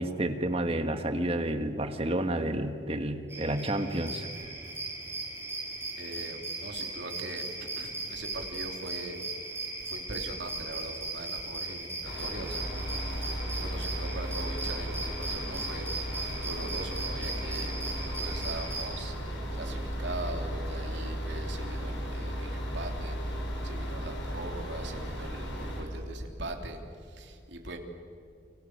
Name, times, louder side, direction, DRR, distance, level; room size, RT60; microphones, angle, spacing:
voice 1, 0.0-4.5, right 1 dB, 30° right, 7 dB, 1.7 m, -30 dB
sound 1, 3.3-18.9, right 3 dB, 15° right, 5.6 m, -38 dB
voice 2, 5.9-9.2 9.8-12.6 13.6-23.4 23.6-27.8, right 2 dB, 70° right, 3 dB, 3.4 m, -41 dB
Computer-fan-Tone-Noise-Hum, 12.0-25.8, equal, 80° left, 6.9 m, -35 dB
30.0 x 24.5 x 8.1 m, 2.4 s
head